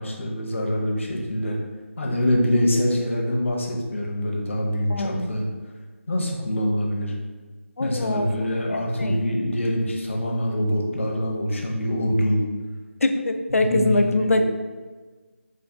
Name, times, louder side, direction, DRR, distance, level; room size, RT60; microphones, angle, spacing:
voice 1, 0.0-1.6 2.0-5.5 6.1-7.1 7.8-12.4 13.6-14.5, equal, 60° left, -1 dB, 0.8 m, -25 dB
voice 2, 4.9-5.3 7.8-8.5 9.0-9.2 13.0-14.5, left 2 dB, 80° left, 6 dB, 0.4 m, -23 dB
3.8 x 2.4 x 3.4 m, 1.4 s
figure-of-eight pair, 165°, 7 cm